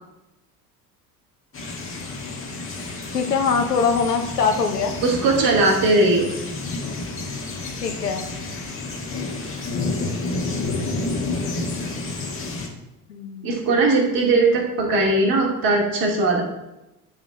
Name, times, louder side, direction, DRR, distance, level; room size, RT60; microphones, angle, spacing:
sound 1, 1.5-12.7, left 3 dB, 30° left, 1.6 m, -30 dB
voice 1, 3.1-5.0 7.8-8.3 13.1-13.5, left 5 dB, 85° left, 6 dB, 1.0 m, -22 dB
voice 2, 5.0-6.3 13.4-16.4, right 2 dB, 45° right, -1 dB, 2.5 m, -19 dB
10.5 x 4.0 x 4.4 m, 0.95 s
hypercardioid pair, 70°, 46 cm